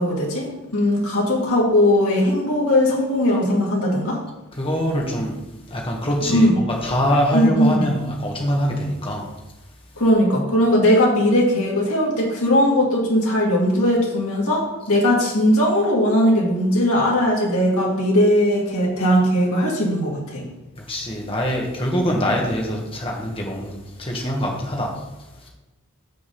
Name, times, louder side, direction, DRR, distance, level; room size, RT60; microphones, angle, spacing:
voice 1, 0.0-4.2 6.3-6.5 7.3-7.8 10.0-20.4, left 1 dB, 80° left, -3 dB, 2.1 m, -19 dB
voice 2, 4.5-5.4 5.7-9.3 20.7-25.0 25.4-25.5, equal, 25° left, -1 dB, 1.7 m, -24 dB
6.8 x 5.2 x 6.9 m, 1.0 s
head